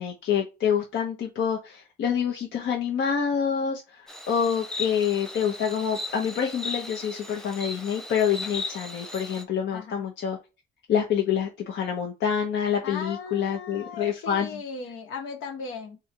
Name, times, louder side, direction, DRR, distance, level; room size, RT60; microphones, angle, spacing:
voice 1, 0.0-10.4 10.9-14.6, left 8 dB, 70° left, 1.0 m, -27 dB
Insect, 4.1-9.4, left 2 dB, 5° left, 0.9 m, -37 dB
voice 2, 9.7-10.0 12.8-16.0, left 5 dB, 85° left, 1.6 m, -37 dB
3.8 x 2.6 x 4.5 m
cardioid pair, 90°, 20 cm